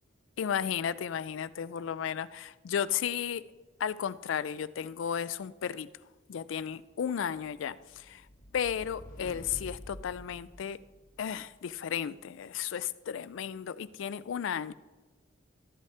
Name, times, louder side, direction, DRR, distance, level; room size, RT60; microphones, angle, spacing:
voice 1, 0.4-3.4 3.8-5.9 6.3-8.2 8.5-10.8 11.2-14.7, left 8 dB, 80° left, 0.4 m, -34 dB
sound 1, 7.7-11.3, equal, 45° left, 1.1 m, -48 dB
13.0 x 8.3 x 3.3 m
head